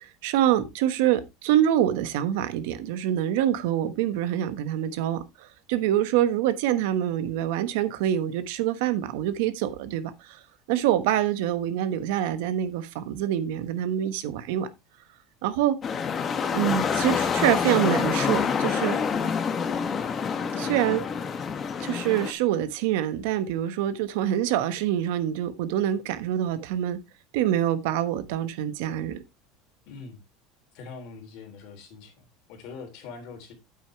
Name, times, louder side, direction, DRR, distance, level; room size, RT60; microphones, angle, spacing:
voice 1, 0.2-5.2 5.7-10.1 10.7-14.7 15.4-15.8 16.5-19.0 20.6-21.0 21.8-27.0 27.3-29.2, right 11 dB, 65° right, 1.2 m, -25 dB
sound 1, 15.8-22.3, left 6 dB, 20° left, 0.8 m, -27 dB
voice 2, 29.9-30.2 30.7-33.5, left 5 dB, 50° left, 3.0 m, -43 dB
9.3 x 8.3 x 3.1 m
cardioid pair, 175°, 0 cm